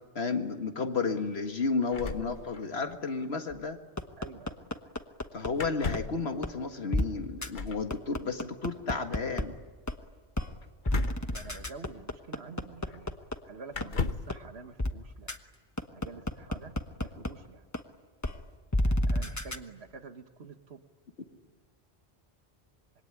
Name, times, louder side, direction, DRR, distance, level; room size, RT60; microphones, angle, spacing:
voice 1, 0.2-3.8 5.3-9.5, left 4 dB, 70° left, 6 dB, 2.0 m, -32 dB
sound 1, 1.9-3.0 3.2-3.3 3.5-3.7 5.5-6.3 7.5-7.9 10.8-12.0 12.9-13.0 13.7-14.4, left 4 dB, 50° left, 1.1 m, -36 dB
sound 2, 4.0-5.5 5.9-6.0 6.4-6.5 6.9-7.0 7.4-7.5 7.9-9.4 9.9-10.0 10.4-10.5 10.9-13.3 13.8-13.9 14.3-14.4 14.8-14.9 15.3-15.4 15.8-17.3 17.7-17.8 18.2-18.3 18.7-19.6, left 1 dB, 15° left, 1.1 m, -29 dB
voice 2, 4.2-4.6 11.2-13.2 13.4-15.4 15.9-17.6 18.8-20.8, right 4 dB, 75° right, 8 dB, 1.7 m, -48 dB
26.0 x 23.0 x 10.0 m, 1.4 s
omnidirectional pair, 1.1 m